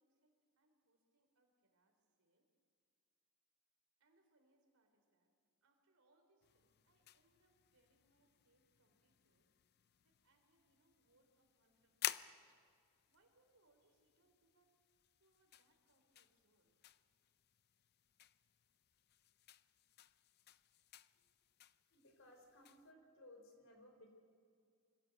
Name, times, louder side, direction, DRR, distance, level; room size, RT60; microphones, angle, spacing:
voice 1, 0.0-2.5 4.0-5.3 5.6-9.5 10.0-14.8 15.2-16.7, right 2 dB, 75° right, 3 dB, 4.0 m, -79 dB
sound 1, 6.4-22.9, left 12 dB, 50° left, 0.5 m, -53 dB
voice 2, 21.9-24.1, left 1 dB, 65° left, 4 dB, 4.3 m, -62 dB
25.0 x 16.0 x 7.9 m, 2.2 s
head